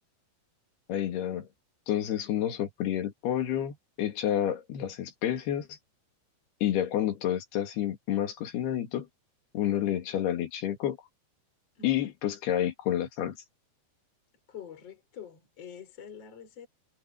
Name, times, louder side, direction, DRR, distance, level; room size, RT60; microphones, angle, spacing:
voice 1, 0.9-1.5 1.9-5.7 6.6-9.1 9.5-11.0 11.8-13.4, left 11 dB, 70° left, 4.0 m, -29 dB
voice 2, 11.8-12.1 14.5-16.7, left 8 dB, 40° left, 4.5 m, -46 dB
omnidirectional pair, 4.9 m